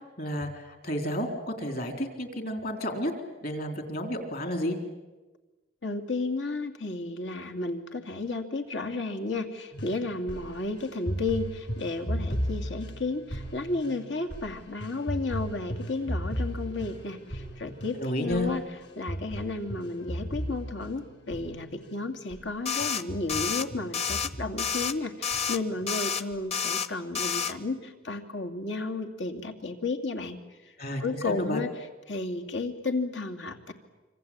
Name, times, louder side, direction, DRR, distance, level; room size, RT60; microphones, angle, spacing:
voice 1, 0.2-3.1 3.4-4.8 17.9-18.5 30.8-31.6, equal, 50° left, 6 dB, 4.1 m, -31 dB
voice 2, 5.8-18.6 19.0-30.4 31.0-31.7 32.1-33.7, left 3 dB, 85° left, 5 dB, 2.7 m, -33 dB
sound 1, 9.7-21.9 22.3-22.5 22.8-24.9 25.3-25.9 26.3-26.4, equal, 70° left, 6.2 m, -36 dB
sound 2, 22.7-23.0 23.3-23.6 23.9-24.3 24.6-24.9 25.2-25.6 25.9-26.2 26.5-26.9 27.2-27.5, left 7 dB, 35° left, 1.1 m, -29 dB
26.0 x 25.5 x 8.9 m, 1.2 s
head